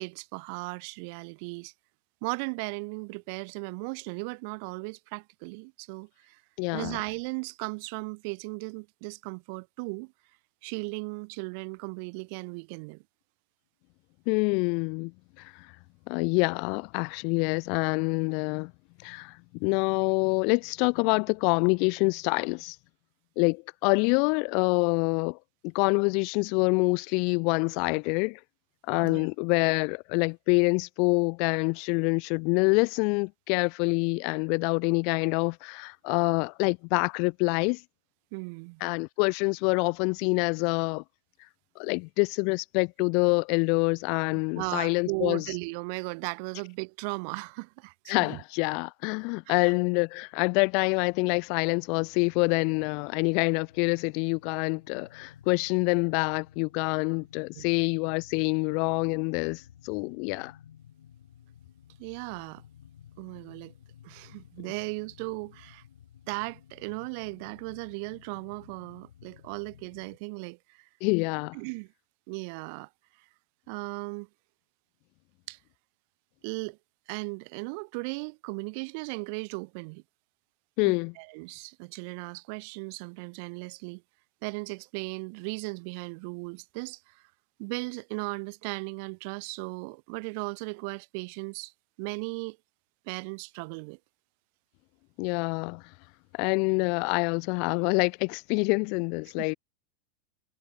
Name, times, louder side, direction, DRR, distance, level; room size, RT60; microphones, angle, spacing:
voice 1, 0.0-1.7 2.2-6.4 6.7-10.1 10.6-13.0 29.0-29.3 38.3-38.8 44.5-48.4 49.5-49.7 57.5-57.6 62.0-62.6 63.2-63.7 64.0-65.8 66.3-70.9 71.5-71.9 72.3-72.9 73.7-74.3 75.5-75.6 76.4-76.8 77.1-80.0 80.8-84.0 84.4-87.2 87.6-91.7 92.0-92.6 93.1-94.0 99.4-99.6, right 34 dB, 45° right, 1.2 m, -37 dB
voice 2, 6.6-7.0 14.3-15.1 15.4-15.5 16.1-18.7 19.0-22.8 23.4-25.4 25.6-28.4 28.9-37.8 38.8-41.0 41.8-45.4 48.1-60.5 71.0-71.6 80.8-81.1 95.2-95.8 96.3-99.5, left 36 dB, 45° left, 0.3 m, -26 dB
sound 1, 52.2-70.2, left 10 dB, 65° left, 6.7 m, -54 dB
figure-of-eight pair, 90°, 0 cm